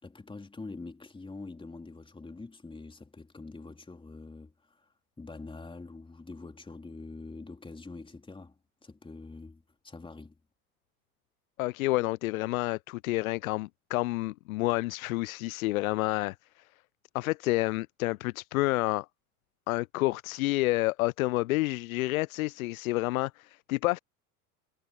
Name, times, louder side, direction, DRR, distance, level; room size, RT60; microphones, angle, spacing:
voice 1, 0.0-4.9 5.2-10.4, left 3 dB, 10° left, 3.5 m, -45 dB
voice 2, 11.6-16.3 17.1-19.1 19.7-24.0, left 20 dB, 65° left, 0.5 m, -29 dB
figure-of-eight pair, 80°, 45 cm